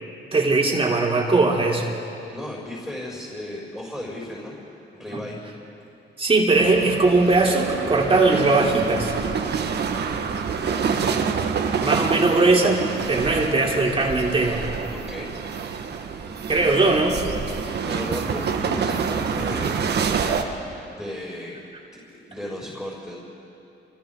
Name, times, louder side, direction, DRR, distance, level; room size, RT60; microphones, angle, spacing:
voice 1, 0.3-1.9 5.1-5.2 6.2-9.1 11.8-14.6 16.5-17.2, right 3 dB, 30° right, -2 dB, 3.5 m, -20 dB
voice 2, 2.3-4.6 4.9-5.4 10.6-11.1 14.9-15.4 17.5-19.9 20.9-21.6 21.9-23.2, left 1 dB, 5° left, -5 dB, 6.7 m, -35 dB
sound 1, 6.5-20.4, right 6 dB, 55° right, 1.6 m, -27 dB
29.5 x 23.5 x 3.9 m, 2.7 s
cardioid pair, 90°, 20 cm